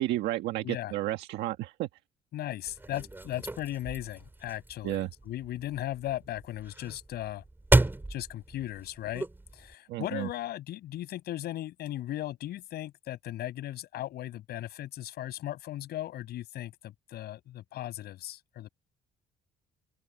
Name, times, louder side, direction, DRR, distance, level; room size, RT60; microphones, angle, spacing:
voice 1, 0.0-1.9 4.8-5.1 9.9-10.3, right 15 dB, 85° right, 1.6 m, -31 dB
voice 2, 0.6-1.0 2.3-7.4 8.1-9.3 9.5-18.7, left 13 dB, 70° left, 7.3 m, -37 dB
sound 1, 2.7-9.7, right 2 dB, 10° right, 4.6 m, -32 dB
open air
cardioid pair, 110°, 17 cm